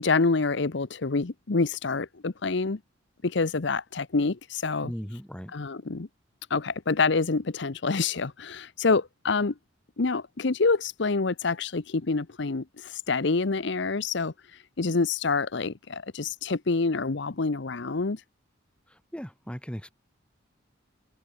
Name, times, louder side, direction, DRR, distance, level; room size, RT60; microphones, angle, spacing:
voice 1, 0.0-2.8 3.2-4.9 5.5-6.1 6.5-9.5 10.0-18.2, left 4 dB, 65° left, 0.8 m, -27 dB
voice 2, 4.8-5.5 18.9-19.9, equal, 5° left, 3.5 m, -38 dB
head